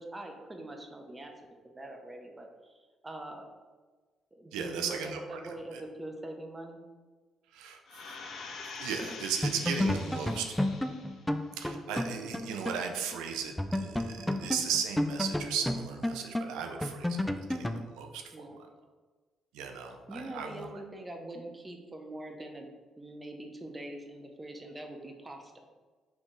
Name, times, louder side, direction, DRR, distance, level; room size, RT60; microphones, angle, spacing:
voice 1, 0.0-1.3 1.7-2.7 3.0-3.5 4.3-6.8 18.3-18.6 20.1-22.7 23.0-25.5, right 1 dB, 20° right, 3 dB, 0.7 m, -43 dB
voice 2, 4.5-5.8 7.5-7.8 8.8-10.6 11.6-18.5 19.5-20.7, right 7 dB, 90° right, 4 dB, 0.5 m, -36 dB
sound 1, 7.9-11.3 11.7-11.8, left 4 dB, 70° left, 0.7 m, -45 dB
sound 2, 9.0-9.2 9.4-12.9 13.1-13.2 13.6-17.9, left 1 dB, 5° left, 0.3 m, -32 dB
4.3 x 2.9 x 3.9 m, 1.4 s
cardioid pair, 75°, 0 cm